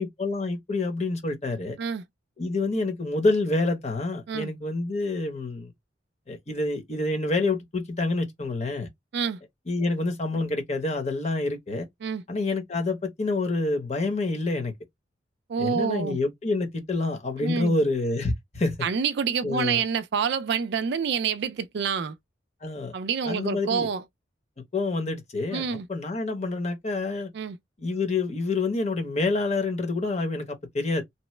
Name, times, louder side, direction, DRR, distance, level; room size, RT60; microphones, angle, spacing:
voice 1, 0.0-1.8 2.4-5.7 6.3-8.9 9.7-11.9 12.3-14.7 15.6-18.8 19.4-19.8 22.6-22.9 23.3-23.9 24.7-27.3 27.8-31.0, left 2 dB, 35° left, 0.9 m, -27 dB
voice 2, 15.5-16.2 17.4-17.8 18.8-22.2 22.9-24.0 25.5-25.9 27.3-27.6, right 6 dB, 60° right, 0.4 m, -27 dB
2.9 x 2.0 x 3.1 m
head